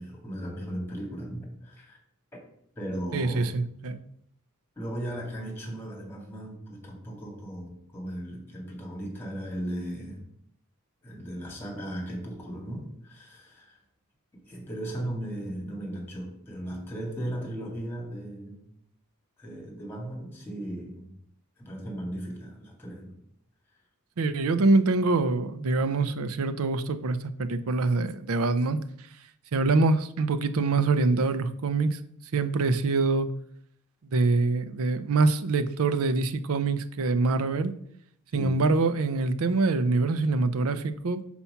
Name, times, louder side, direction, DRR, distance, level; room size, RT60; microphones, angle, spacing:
voice 1, 0.0-2.0 2.8-3.5 4.8-10.2 11.0-13.8 14.3-18.6 19.4-21.1 21.6-23.2 38.3-38.6, right 1 dB, 10° left, 0 dB, 1.9 m, -37 dB
voice 2, 3.1-4.0 24.2-28.8 29.5-32.0 32.3-33.3 34.1-37.8 38.3-41.2, right 3 dB, 80° right, 12 dB, 0.5 m, -25 dB
5.7 x 4.3 x 5.6 m, 0.71 s
head